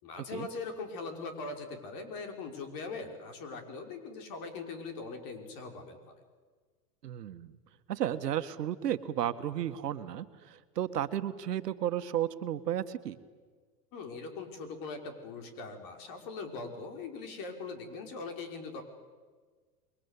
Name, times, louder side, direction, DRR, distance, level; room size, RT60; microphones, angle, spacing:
voice 1, 0.0-6.1 13.9-18.8, left 4 dB, 45° left, 5 dB, 5.7 m, -41 dB
voice 2, 7.0-7.6 7.9-13.2, right 11 dB, 80° right, 10 dB, 1.8 m, -33 dB
28.0 x 23.0 x 8.4 m, 1.5 s
hypercardioid pair, 110°, 47 cm